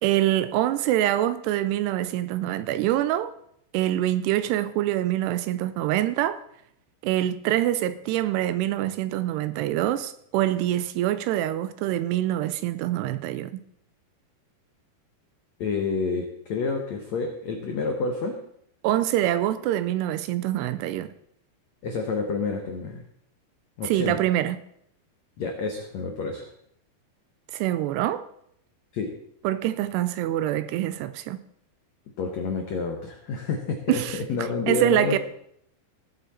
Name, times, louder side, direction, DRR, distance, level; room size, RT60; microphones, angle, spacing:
voice 1, 0.0-3.3 3.7-6.4 7.0-13.6 18.8-21.1 23.8-24.6 27.5-28.3 29.4-31.4 33.9-35.2, right 13 dB, 80° right, 2.5 m, -25 dB
voice 2, 15.6-18.4 21.8-23.0 23.8-24.2 25.4-26.5 28.9-29.1 32.2-35.2, left 4 dB, 80° left, 1.5 m, -29 dB
19.0 x 7.8 x 4.3 m
omnidirectional pair, 5.0 m